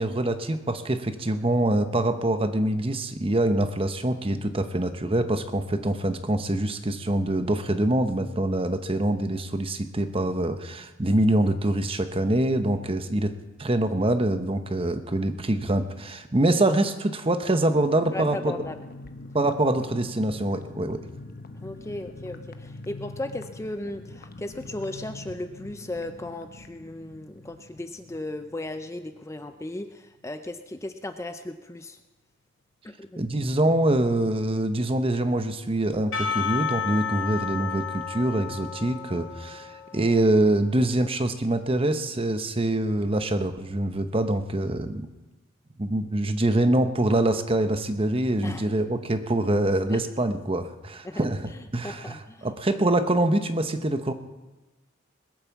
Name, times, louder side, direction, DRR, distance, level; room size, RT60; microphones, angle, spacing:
voice 1, 0.0-13.3 13.6-18.5 19.3-21.0 33.2-45.1 45.8-54.1, right 1 dB, 25° right, 8 dB, 0.9 m, -25 dB
sound 1, 17.6-29.9 30.2-30.3 30.6-30.8, left 2 dB, 45° left, 0.9 m, -44 dB
voice 2, 18.1-18.8 21.6-32.0 32.8-33.2 48.4-48.7 49.9-50.0 51.0-51.2 51.5-52.5, left 1 dB, 15° left, 8 dB, 0.5 m, -36 dB
Percussion / Church bell, 36.1-40.5, left 7 dB, 70° left, 3.0 m, -32 dB
20.5 x 8.9 x 7.2 m, 1.1 s
head